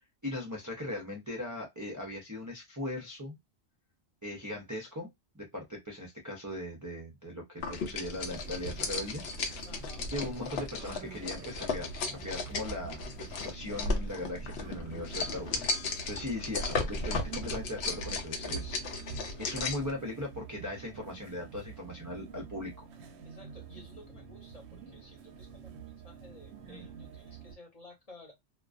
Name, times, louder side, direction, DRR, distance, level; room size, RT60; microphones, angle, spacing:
voice 1, 0.2-3.4 4.2-9.2 10.1-18.8 19.4-22.9, left 1 dB, 25° right, 0.4 m, -39 dB
Dog Eating, 7.6-19.9, left 3 dB, 75° left, 0.8 m, -35 dB
sound 1, 8.1-27.6, right 6 dB, 85° right, 0.9 m, -47 dB
voice 2, 9.6-10.1 23.2-28.3, left 2 dB, 35° left, 0.9 m, -54 dB
2.3 x 2.2 x 2.3 m
omnidirectional pair, 1.1 m